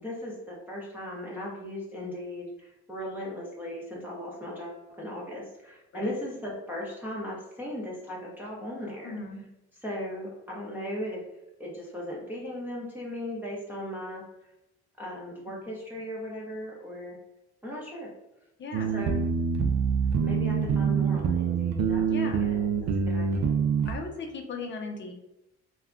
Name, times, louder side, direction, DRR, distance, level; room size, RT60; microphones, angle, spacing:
voice 1, 0.0-9.2 9.8-11.2 11.6-14.5 15.0-17.2 17.6-18.1 18.9-19.2 20.2-23.5, left 1 dB, 5° right, -6 dB, 0.7 m, -37 dB
voice 2, 9.0-9.4 18.6-19.0 22.1-22.5 23.8-25.1, left 4 dB, 40° left, 3 dB, 0.6 m, -37 dB
sound 1, 18.7-23.9, right 6 dB, 60° right, 0.4 m, -26 dB
2.3 x 2.1 x 3.6 m, 0.91 s
cardioid pair, 90°, 30 cm